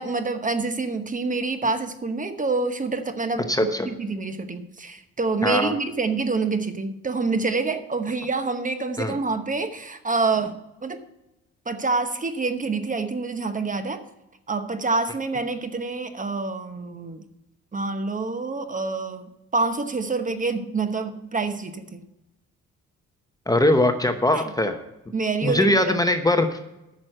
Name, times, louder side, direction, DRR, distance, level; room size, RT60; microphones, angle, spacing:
voice 1, 0.0-3.5 3.8-10.6 10.8-11.0 11.7-14.0 14.5-17.2 17.7-22.0 24.3-24.4 25.1-25.9, right 3 dB, 25° right, 9 dB, 0.9 m, -27 dB
voice 2, 3.5-3.9 5.4-5.7 9.0-9.1 23.5-24.8 25.4-26.6, left 1 dB, 10° left, 7 dB, 0.9 m, -21 dB
9.0 x 6.2 x 7.7 m, 0.93 s
cardioid pair, 90°, 30 cm